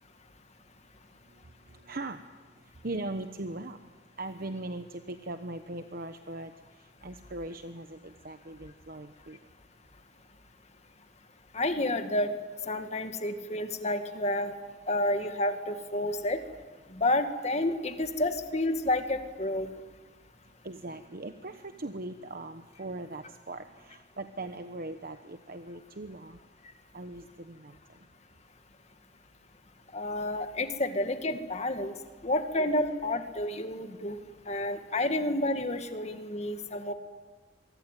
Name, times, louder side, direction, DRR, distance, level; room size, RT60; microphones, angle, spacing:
voice 1, 1.7-2.2 2.8-3.8 4.2-6.5 6.8-9.4 20.6-26.4 26.9-27.8 34.5-34.6, right 2 dB, 50° right, 8 dB, 1.1 m, -40 dB
voice 2, 11.5-12.3 12.7-14.5 14.9-16.4 16.9-19.7 29.9-31.9 32.2-34.2 34.5-36.9, left 1 dB, 35° left, 7 dB, 2.1 m, -30 dB
26.0 x 24.0 x 9.2 m, 1.3 s
head